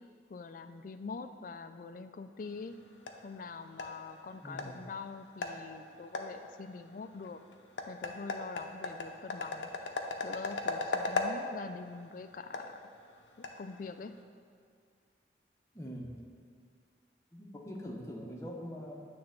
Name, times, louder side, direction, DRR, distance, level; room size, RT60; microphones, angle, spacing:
voice 1, 0.3-2.8 3.2-7.4 7.9-9.9 10.2-12.8 13.4-14.1, left 4 dB, 45° left, 9 dB, 0.3 m, -44 dB
sound 1, 2.4-14.2, left 3 dB, 90° left, 0.7 m, -40 dB
voice 2, 4.4-4.8 15.7-16.1 17.3-18.9, equal, 15° left, -2 dB, 0.8 m, -43 dB
8.8 x 3.4 x 6.8 m, 2.2 s
head